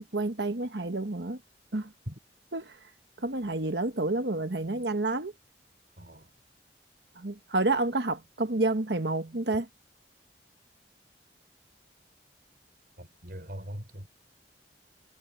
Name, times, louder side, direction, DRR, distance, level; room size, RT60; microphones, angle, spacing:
voice 1, 0.0-1.4 1.7-1.9 2.5-2.7 3.2-5.3 7.2-9.7, right 2 dB, 70° right, 1.4 m, -29 dB
voice 2, 6.0-6.3 13.0-14.1, equal, 55° right, 6.2 m, -41 dB
head